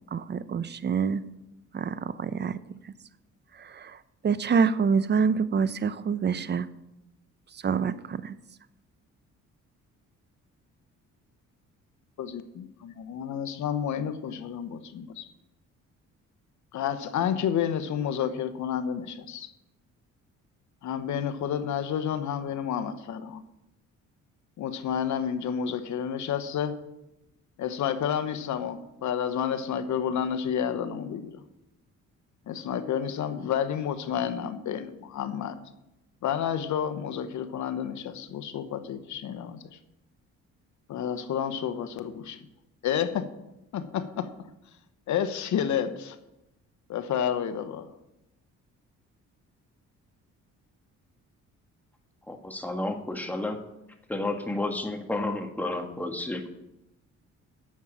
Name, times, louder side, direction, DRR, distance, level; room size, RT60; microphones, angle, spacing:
voice 1, 0.1-1.2 1.7-2.8 3.5-4.0 4.2-6.7 7.5-8.3, right 6 dB, 35° right, 15 dB, 0.7 m, -26 dB
voice 2, 12.2-15.3 16.7-19.5 20.8-23.4 24.6-26.8 27.6-31.4 32.5-35.6 36.2-39.8 40.9-42.4 42.8-43.3 43.7-44.3 45.1-46.2 46.9-47.9, left 8 dB, 70° left, 11 dB, 1.1 m, -30 dB
voice 3, 52.3-53.6 54.1-56.5, left 2 dB, 5° left, 3 dB, 1.6 m, -31 dB
9.3 x 7.5 x 8.4 m, 0.91 s
cardioid pair, 90°, 30 cm